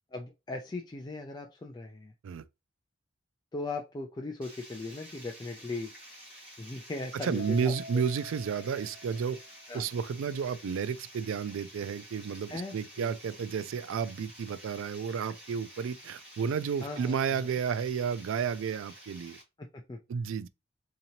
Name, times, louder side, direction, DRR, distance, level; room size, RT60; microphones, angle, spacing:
voice 1, 0.1-2.1 3.5-5.9 6.6-8.0 9.7-9.9 12.5-13.1 16.8-17.4 19.6-20.0, left 2 dB, 20° left, 0.3 m, -39 dB
Water, 4.4-19.4, equal, 5° right, 2.2 m, -51 dB
voice 2, 7.1-9.4 9.7-19.4 20.1-20.5, right 6 dB, 80° right, 0.3 m, -32 dB
Keyboard (musical), 7.4-9.9, left 1 dB, 60° left, 0.8 m, -47 dB
3.8 x 2.8 x 2.8 m
head